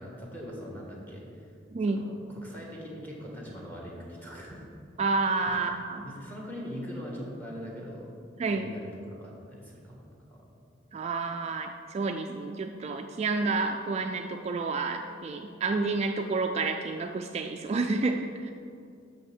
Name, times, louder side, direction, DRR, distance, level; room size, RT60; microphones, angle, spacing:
voice 1, 0.0-1.4 1.9-4.6 5.5-5.6 6.0-8.1 8.5-10.0 10.3-10.4, equal, 10° left, -3 dB, 1.6 m, -41 dB
voice 2, 1.7-2.0 5.0-6.0 8.4-8.7 10.9-18.5, right 3 dB, 35° right, 5 dB, 0.3 m, -30 dB
6.4 x 5.5 x 7.1 m, 2.5 s
head